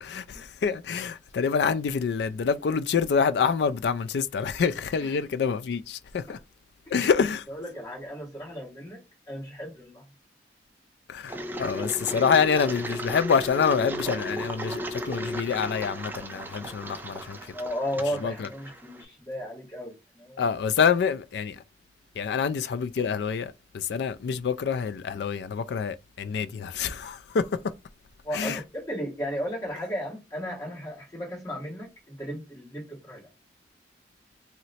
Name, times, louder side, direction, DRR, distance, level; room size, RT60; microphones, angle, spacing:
voice 1, 0.0-6.4 6.9-7.5 11.1-17.4 18.2-18.5 20.4-21.6 22.2-27.6 28.3-28.6, left 6 dB, 70° left, 0.3 m, -26 dB
voice 2, 7.5-9.0 9.3-10.0 11.7-11.9 17.5-20.5 28.2-33.3, equal, 20° left, 1.4 m, -35 dB
Engine, 11.3-19.0, equal, 10° right, 0.3 m, -35 dB
2.8 x 2.1 x 4.1 m
head